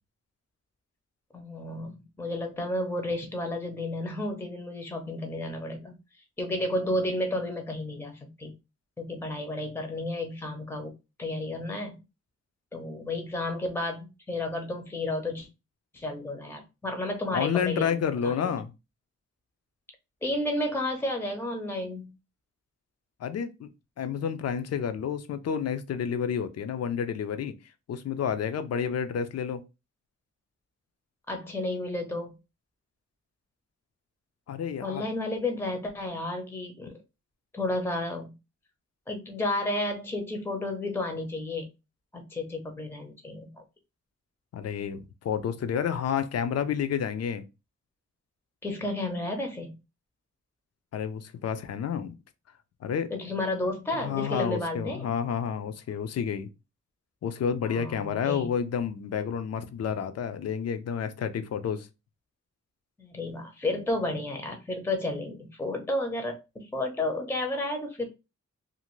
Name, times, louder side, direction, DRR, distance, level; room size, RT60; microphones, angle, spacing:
voice 1, 1.3-6.0 6.4-8.5 9.0-10.9 11.2-12.0 12.7-15.5 15.9-18.6 20.2-22.1 31.3-32.3 34.8-37.0 37.5-38.3 39.1-41.7 42.1-43.5 48.6-49.8 53.1-55.1 57.6-58.5 63.0-68.1, left 1 dB, 10° left, 0.6 m, -32 dB
voice 2, 17.3-18.7 23.2-23.7 24.0-27.5 27.9-29.6 34.5-35.0 44.5-47.4 50.9-52.1 52.8-53.1 53.9-56.5 57.2-61.9, left 7 dB, 60° left, 0.4 m, -30 dB
2.5 x 2.5 x 3.0 m
wide cardioid pair, 115°, 29 cm